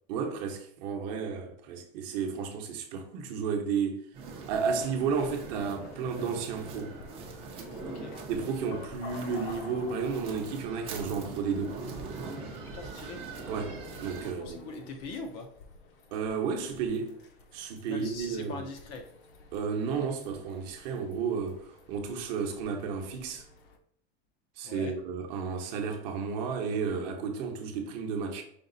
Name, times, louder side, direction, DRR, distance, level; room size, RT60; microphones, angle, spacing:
voice 1, 0.1-4.1 4.5-6.9 8.3-11.8 13.5-14.7 16.1-17.2 17.5-18.6 19.5-23.4 24.6-28.4, right 5 dB, 45° right, 0.9 m, -32 dB
sound 1, 4.1-14.3, right 4 dB, 20° right, 0.5 m, -42 dB
sound 2, 5.1-23.8, left 3 dB, 60° left, 0.8 m, -50 dB
voice 2, 7.8-8.1 12.7-13.2 14.2-15.5 17.9-19.0 24.6-24.9, left 3 dB, 30° left, 0.5 m, -41 dB
5.2 x 2.4 x 3.9 m
supercardioid pair, 170°, 30 cm